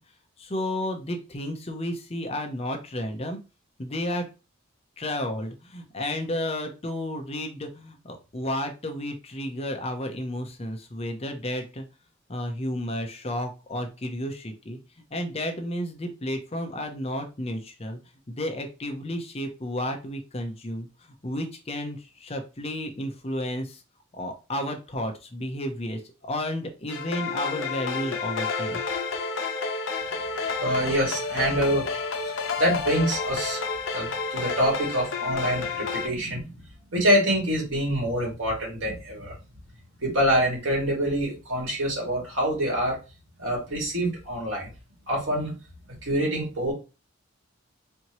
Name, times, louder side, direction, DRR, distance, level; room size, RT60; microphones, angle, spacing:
voice 1, 0.4-3.4 3.8-4.3 5.0-11.9 12.3-14.8 15.1-18.0 18.3-20.9 21.2-23.8 24.1-28.8, left 1 dB, 30° left, 4 dB, 0.7 m, -32 dB
sound 1, 26.9-36.1, left 4 dB, 70° left, 0.8 m, -30 dB
voice 2, 30.6-31.9 32.6-33.6 33.9-36.6 36.9-39.4 40.0-43.0 43.4-44.7 45.1-45.6 46.0-46.7, equal, 80° right, -2 dB, 2.3 m, -25 dB
4.4 x 2.8 x 3.0 m, 0.30 s
head